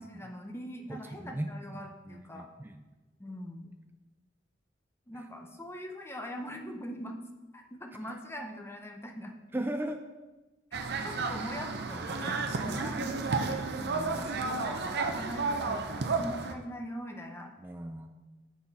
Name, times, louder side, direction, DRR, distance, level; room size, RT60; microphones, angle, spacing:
voice 1, 0.0-2.5 3.2-3.7 5.1-7.2 7.5-9.3 11.0-13.7 14.0-17.5, equal, 15° left, 3 dB, 0.7 m, -42 dB
voice 2, 0.9-2.8 8.0-8.1 9.5-10.0 12.5-12.9 13.8-14.2 17.6-18.2, right 1 dB, 10° right, 5 dB, 0.3 m, -38 dB
sound 1, 10.7-16.5, right 4 dB, 60° right, 0.6 m, -32 dB
7.1 x 6.2 x 4.1 m, 1.2 s
head